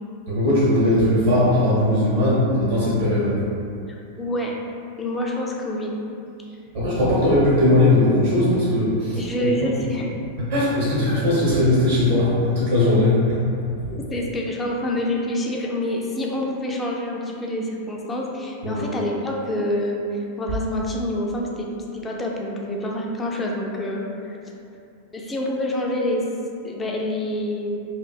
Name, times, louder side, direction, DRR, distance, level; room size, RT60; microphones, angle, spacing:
voice 1, 0.3-3.3 6.7-9.5 10.4-13.5 18.6-18.8, left 1 dB, 60° right, -9 dB, 0.7 m, -19 dB
voice 2, 4.2-4.6 5.0-5.9 9.2-10.1 13.9-20.0 20.4-21.7 21.9-24.4 25.1-26.2 26.6-27.8, left 1 dB, 15° left, -1 dB, 0.3 m, -27 dB
2.5 x 2.2 x 2.3 m, 2.5 s
figure-of-eight pair, 90°, 0 cm